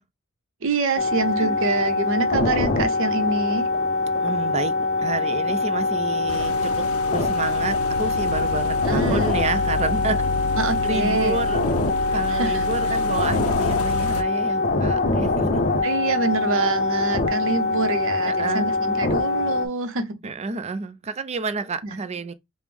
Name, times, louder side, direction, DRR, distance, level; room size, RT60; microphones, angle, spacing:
voice 1, 0.6-3.7 8.9-9.4 10.6-11.5 12.3-12.6 15.8-20.3 21.8-21.9, right 3 dB, 65° right, 0.6 m, -26 dB
sound 1, 1.0-19.7, left 3 dB, 40° left, 0.6 m, -23 dB
sound 2, 2.8-8.1, left 2 dB, 20° left, 1.2 m, -43 dB
voice 2, 4.2-6.9 7.1-10.2 10.8-11.6 12.1-15.6 18.2-18.8 20.2-22.3, right 4 dB, 30° right, 0.4 m, -29 dB
sound 3, 6.3-14.2, left 3 dB, 85° left, 0.4 m, -31 dB
4.9 x 2.0 x 3.4 m
head